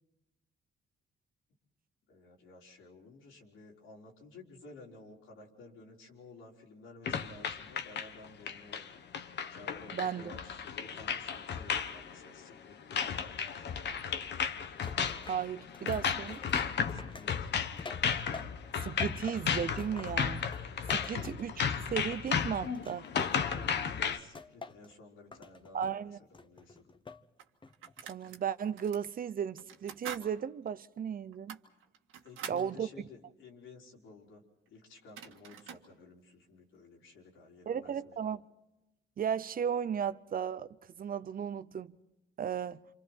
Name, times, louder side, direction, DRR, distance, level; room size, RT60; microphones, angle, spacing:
voice 1, 2.1-8.9 9.5-14.4 16.9-17.5 23.3-27.0 32.2-34.4 34.7-38.3, left 3 dB, 85° left, 4.3 m, -54 dB
sound 1, 7.1-24.2, left 7 dB, 60° left, 1.3 m, -34 dB
voice 2, 9.9-10.4 15.3-16.4 18.8-20.4 20.9-23.1 25.7-26.2 28.0-31.6 32.5-32.9 37.7-38.4 39.2-42.0 42.4-42.8, right 8 dB, 45° right, 0.7 m, -35 dB
sound 2, 14.8-18.7 19.0-21.8 22.1-23.7 24.3-24.9 25.3-26.0 26.3-27.2 27.6-28.0, left 4 dB, 25° left, 1.1 m, -49 dB
sound 3, 26.6-26.7 27.4-28.4 28.8-29.0 29.6-30.3 30.7-30.8 31.3-32.7 34.7-34.8 35.0-35.9, right 8 dB, 85° right, 1.9 m, -45 dB
28.0 x 27.0 x 4.5 m
cardioid pair, 90°, 20 cm